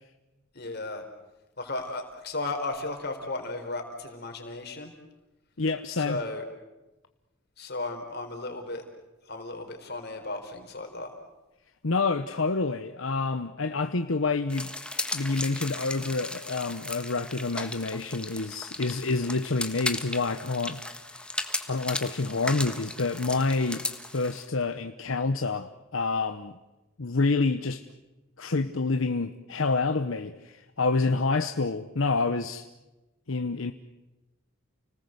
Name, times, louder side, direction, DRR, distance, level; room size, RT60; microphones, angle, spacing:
voice 1, 0.5-1.0 1.6-4.9 5.9-6.5 7.6-8.8 9.3-11.1, left 2 dB, 50° left, 4.4 m, -35 dB
voice 2, 5.6-6.2 11.8-14.7 15.1-20.8 21.7-23.8 24.1-26.5 27.0-27.9 28.4-32.6 33.3-33.7, left 3 dB, 70° left, 1.0 m, -28 dB
sound 1, 14.5-24.5, left 2 dB, 5° left, 1.5 m, -36 dB
30.0 x 19.5 x 8.0 m
head